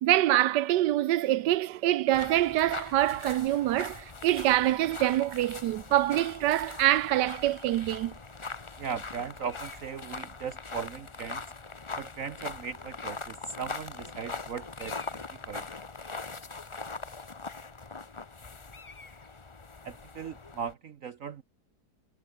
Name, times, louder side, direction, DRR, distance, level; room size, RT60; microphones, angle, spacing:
voice 1, 0.0-8.1, right 14 dB, 85° right, 1.3 m, -25 dB
sound 1, 2.1-20.7, left 4 dB, 25° left, 0.8 m, -41 dB
voice 2, 8.8-11.4 12.0-15.6 19.8-21.4, right 6 dB, 55° right, 1.3 m, -38 dB
omnidirectional pair, 1.8 m